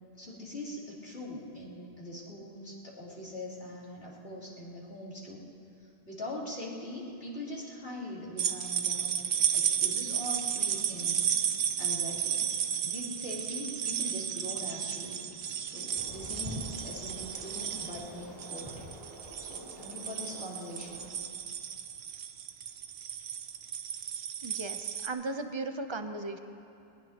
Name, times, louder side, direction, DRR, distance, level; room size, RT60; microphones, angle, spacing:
voice 1, 0.1-5.4 5.8-9.2 9.5-12.4 12.8-15.2 15.6-18.9 19.4-21.1, left 1 dB, 75° left, -9 dB, 3.8 m, -42 dB
sound 1, 8.4-25.1, right 8 dB, 80° right, 0.9 m, -33 dB
sound 2, 8.9-18.8, left 1 dB, 50° left, 3.2 m, -57 dB
sound 3, 16.0-21.1, right 1 dB, 65° right, 2.0 m, -46 dB
voice 2, 24.4-26.4, right 2 dB, 30° right, 7 dB, 0.7 m, -36 dB
21.0 x 20.5 x 3.0 m, 2.7 s
omnidirectional pair, 1.0 m